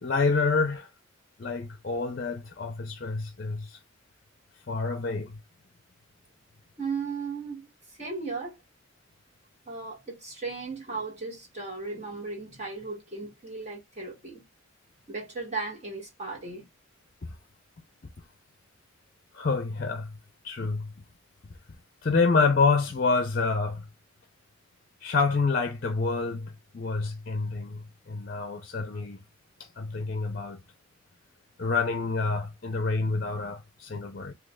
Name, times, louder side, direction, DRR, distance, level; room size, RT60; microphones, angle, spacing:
voice 1, 0.0-0.9 1.4-3.8 4.7-5.4 19.3-20.1 20.4-20.9 22.0-23.9 25.0-29.2 29.8-30.6 31.6-34.3, left 4 dB, 45° left, 0.5 m, -27 dB
voice 2, 6.8-7.7 8.0-8.6 9.7-14.4 15.1-16.6, right 4 dB, 35° right, 1.7 m, -36 dB
3.9 x 2.8 x 2.2 m
head